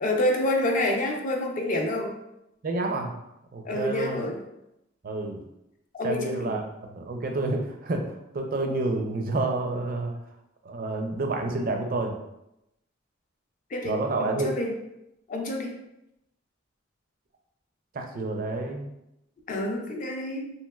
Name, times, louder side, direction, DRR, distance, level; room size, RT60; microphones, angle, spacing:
voice 1, 0.0-2.1 3.6-4.4 5.9-6.5 13.7-14.7 15.3-15.7 19.5-20.5, left 1 dB, 45° left, 2 dB, 0.5 m, -28 dB
voice 2, 2.6-3.1 3.5-4.2 5.0-5.4 6.0-6.6 6.9-8.1 8.3-10.1 10.6-12.2 13.8-14.5 17.9-18.9, right 2 dB, 50° right, 3 dB, 0.4 m, -29 dB
3.0 x 2.7 x 2.3 m, 0.86 s
head